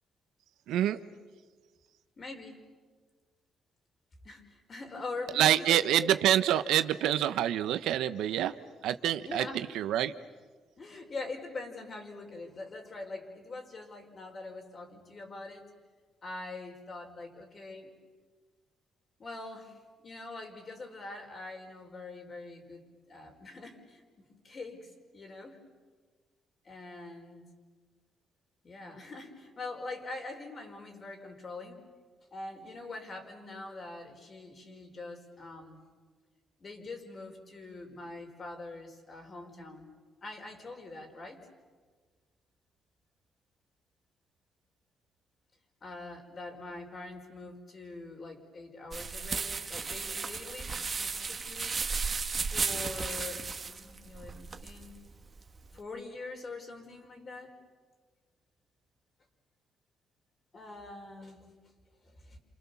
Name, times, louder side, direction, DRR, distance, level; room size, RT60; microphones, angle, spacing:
voice 1, 0.7-1.0 5.3-8.5 8.8-10.1, right 11 dB, 85° right, 11 dB, 1.0 m, -27 dB
voice 2, 2.2-2.6 4.2-6.1 9.2-9.6 10.8-15.6 16.2-17.9 19.2-19.8 20.0-25.6 26.6-27.5 28.6-31.8 32.3-35.8 36.6-39.9 40.2-41.4 45.8-51.7 52.5-55.0 55.7-57.5 60.5-61.5 62.0-62.4, left 3 dB, 40° left, 3 dB, 5.2 m, -43 dB
sound 1, 48.9-55.8, right 4 dB, 35° right, 1.6 m, -35 dB
28.0 x 28.0 x 7.1 m, 1.5 s
cardioid pair, 90°, 0 cm